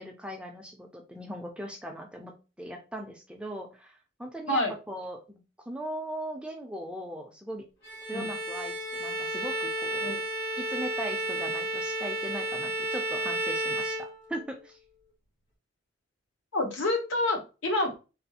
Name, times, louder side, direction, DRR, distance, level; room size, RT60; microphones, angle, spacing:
voice 1, 0.0-2.3 2.6-7.7 8.1-10.2 10.6-14.8, equal, 5° right, 2 dB, 0.4 m, -39 dB
Bowed string instrument, 7.8-14.6, right 1 dB, 55° left, 1.0 m, -32 dB
voice 2, 16.5-18.0, left 1 dB, 75° left, 3 dB, 0.8 m, -28 dB
3.3 x 2.3 x 2.7 m, 0.31 s
head